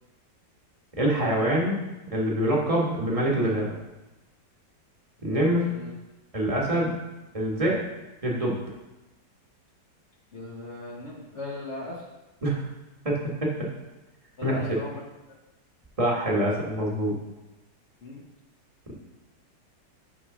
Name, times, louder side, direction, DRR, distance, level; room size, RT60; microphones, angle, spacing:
voice 1, 1.0-1.8 2.1-3.8 5.2-5.7 6.3-6.9 7.3-7.8 8.2-8.5 12.4-12.6 13.0-13.5 14.4-14.5 16.0-17.2, right 1 dB, 20° right, -3 dB, 1.4 m, -25 dB
voice 2, 10.3-12.0 14.4-15.0 18.0-18.2, left 2 dB, 45° left, -3 dB, 1.2 m, -38 dB
6.2 x 4.9 x 6.1 m, 1.0 s
omnidirectional pair, 1.9 m